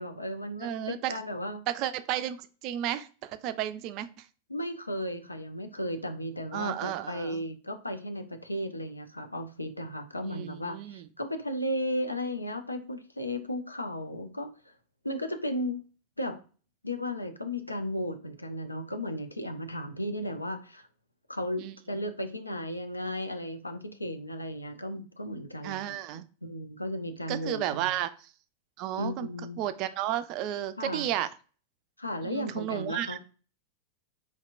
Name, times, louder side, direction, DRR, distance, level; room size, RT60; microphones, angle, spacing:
voice 1, 0.0-1.6 4.5-14.5 15.0-15.8 16.2-16.4 16.8-20.9 21.3-27.9 29.0-29.6 30.8-31.1 32.0-33.2, left 1 dB, 85° left, 7 dB, 0.5 m, -35 dB
voice 2, 0.6-1.2 1.7-4.3 6.5-7.4 10.2-11.0 21.6-21.7 25.6-26.2 27.3-28.3 28.8-29.3 29.6-31.3 32.2-33.2, right 12 dB, 40° right, 13 dB, 0.3 m, -33 dB
4.4 x 2.8 x 2.5 m, 0.38 s
figure-of-eight pair, 90°, 0 cm